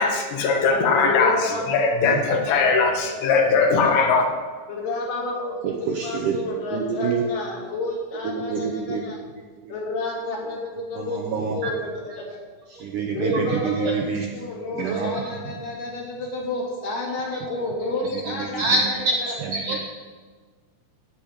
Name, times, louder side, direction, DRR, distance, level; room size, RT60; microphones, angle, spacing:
voice 1, 0.0-4.3, left 4 dB, 85° left, 4 dB, 3.7 m, -20 dB
voice 2, 0.9-2.0 2.3-2.7 3.1-3.5 3.8-4.0 4.7-9.2 9.7-11.2 11.5-12.4 13.1-14.0 14.3-18.8 19.2-19.3, left 2 dB, 55° left, -2 dB, 3.9 m, -30 dB
voice 3, 5.6-6.4 6.7-7.2 8.4-9.0 9.7-9.8 11.0-11.6 12.7-14.3 14.8-15.2 18.3-19.8, right 4 dB, 70° right, 1 dB, 2.0 m, -26 dB
16.0 x 5.6 x 8.7 m, 1.5 s
omnidirectional pair, 4.9 m